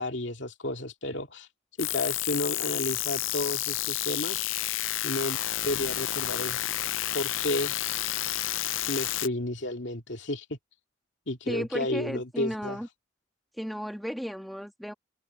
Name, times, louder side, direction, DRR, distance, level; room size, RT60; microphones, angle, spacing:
voice 1, 0.0-1.5 1.8-4.4 5.0-6.7 7.1-7.7 8.9-10.6 11.3-12.8, left 1 dB, 65° left, 2.5 m, -32 dB
sound 1, 1.8-9.3, left 14 dB, 85° left, 0.6 m, -30 dB
voice 2, 11.5-12.9 13.6-14.9, equal, ahead, 2.7 m, -34 dB
head